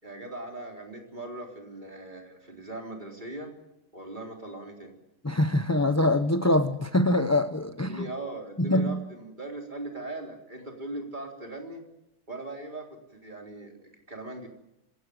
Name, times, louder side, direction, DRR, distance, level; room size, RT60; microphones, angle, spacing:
voice 1, 0.0-3.5 3.9-4.9 7.9-11.8 12.3-14.5, right 2 dB, 30° right, 2 dB, 4.1 m, -39 dB
voice 2, 5.2-8.1 8.6-9.0, left 1 dB, 15° left, 9 dB, 0.6 m, -24 dB
25.5 x 17.0 x 9.5 m, 0.92 s
omnidirectional pair, 1.7 m